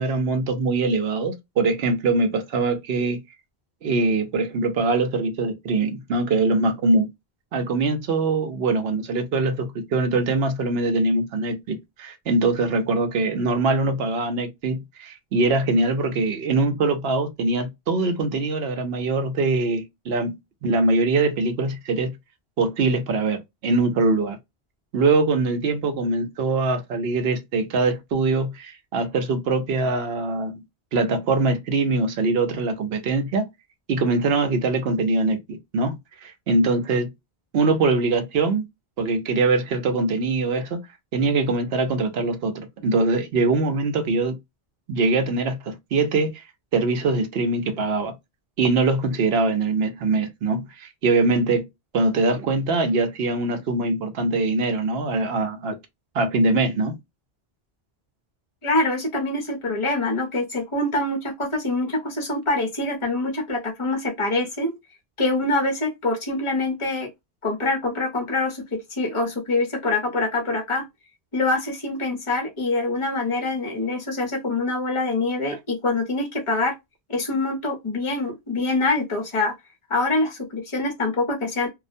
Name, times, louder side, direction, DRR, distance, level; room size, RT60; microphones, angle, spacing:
voice 1, 0.0-3.2 3.8-7.1 7.5-20.4 20.6-22.2 22.6-24.4 24.9-30.6 30.9-33.5 33.9-37.1 37.5-38.6 39.0-40.8 41.1-44.4 44.9-46.4 46.7-48.1 48.6-51.7 51.9-55.8 56.1-57.0, right 3 dB, 70° right, 0.8 m, -23 dB
voice 2, 58.6-64.7 65.2-67.1 67.4-70.9 71.3-76.7 77.1-79.5 79.9-81.7, left 2 dB, 35° left, 0.8 m, -25 dB
2.4 x 2.1 x 2.5 m
omnidirectional pair, 1.1 m